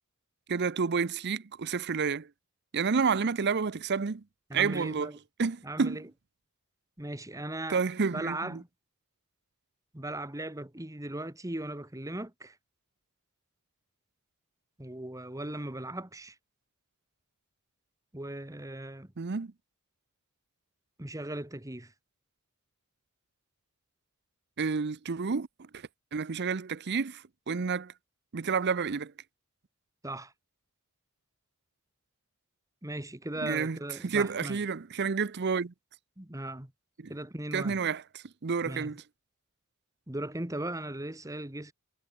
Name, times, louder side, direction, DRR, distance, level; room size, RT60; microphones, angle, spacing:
voice 1, 0.5-2.3 2.7-4.2 4.5-5.1 5.4-6.0 7.7-8.6 19.2-19.5 24.6-25.5 25.7-25.8 26.1-27.9 28.3-29.1 33.4-33.8 34.0-35.7 37.0-37.1 37.5-39.0, right 5 dB, 50° right, 0.6 m, -30 dB
voice 2, 4.5-5.2 5.6-6.1 7.0-7.8 8.1-8.7 9.9-12.6 14.8-16.3 18.1-19.1 21.0-21.9 30.0-30.3 32.8-34.6 36.2-36.7 37.1-37.7 38.7-38.9 40.1-41.7, right 1 dB, 15° right, 1.7 m, -38 dB
head